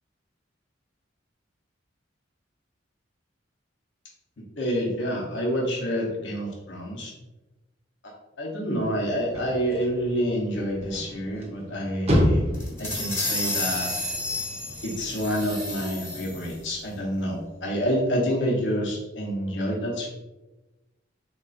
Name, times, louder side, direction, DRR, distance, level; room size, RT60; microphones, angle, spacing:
voice 1, 4.6-7.1 8.0-8.1 8.4-12.5 12.8-13.9 14.8-20.1, equal, 70° left, -2 dB, 0.8 m, -28 dB
sound 1, 8.8-17.1, equal, 35° right, 0.7 m, -31 dB
sound 2, 12.5-16.6, left 2 dB, 15° left, 1.2 m, -31 dB
3.8 x 3.0 x 2.4 m, 1.1 s
head